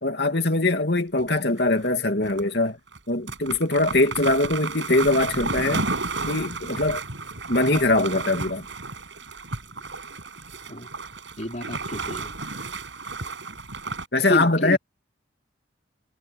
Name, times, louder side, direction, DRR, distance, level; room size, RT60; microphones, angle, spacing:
voice 1, 0.0-2.8 3.1-5.9 6.3-7.0 7.5-8.7 14.1-14.8, left 2 dB, 55° left, 2.8 m, -22 dB
sound 1, 1.2-1.9 2.2-2.4 2.9-3.0 3.3-14.1, right 3 dB, 75° right, 6.6 m, -33 dB
voice 2, 11.4-12.7 14.3-14.8, equal, 40° left, 4.9 m, -30 dB
head